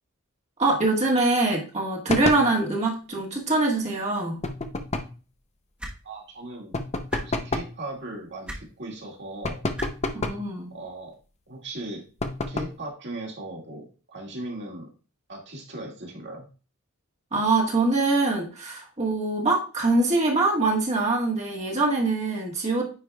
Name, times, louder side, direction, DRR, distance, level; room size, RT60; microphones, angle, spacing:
voice 1, 0.6-4.4 10.1-10.7 17.3-22.8, right 2 dB, 30° right, -2 dB, 1.5 m, -23 dB
sound 1, 2.1-2.5 4.4-5.2 6.7-7.8 9.4-10.5 12.2-12.8, left 2 dB, 30° left, 0.6 m, -29 dB
sound 2, 5.8-6.0 7.1-7.2 8.5-8.6 9.8-9.9 11.1-11.2, right 1 dB, 5° right, 1.2 m, -34 dB
voice 2, 6.0-6.8 7.2-9.6 10.7-11.1 11.5-12.0 12.5-14.9 15.3-16.5, right 2 dB, 50° right, -1 dB, 2.1 m, -38 dB
9.5 x 5.0 x 2.3 m, 0.35 s
head